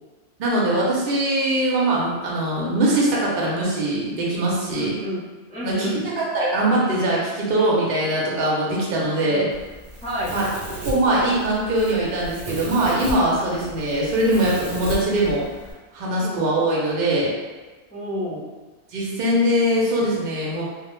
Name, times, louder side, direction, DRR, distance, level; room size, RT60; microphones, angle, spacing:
voice 1, 0.4-4.9 5.6-9.5 10.3-10.5 10.8-15.4 15.9-17.3 18.9-20.6, right 1 dB, 60° right, -4 dB, 0.7 m, -22 dB
voice 2, 4.7-6.0 9.2-9.5 10.0-10.4 16.2-16.4 17.9-18.4, equal, 5° left, -10 dB, 0.5 m, -30 dB
Domestic sounds home sounds, 9.5-15.7, right 1 dB, 85° right, 0.9 m, -35 dB
2.1 x 2.0 x 2.9 m, 1.3 s
omnidirectional pair, 1.1 m